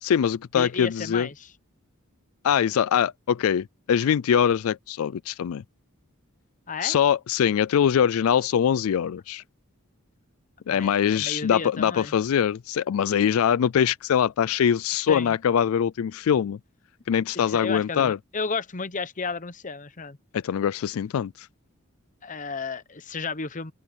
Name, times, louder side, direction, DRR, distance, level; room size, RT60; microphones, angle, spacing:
voice 1, 0.0-1.3 2.4-5.6 6.8-9.4 10.7-16.6 17.1-18.2 20.3-21.5, left 8 dB, 75° left, 0.3 m, -23 dB
voice 2, 0.5-1.5 6.7-7.0 10.7-12.1 15.1-15.4 17.5-20.2 22.2-23.7, left 4 dB, 35° left, 0.8 m, -33 dB
open air
head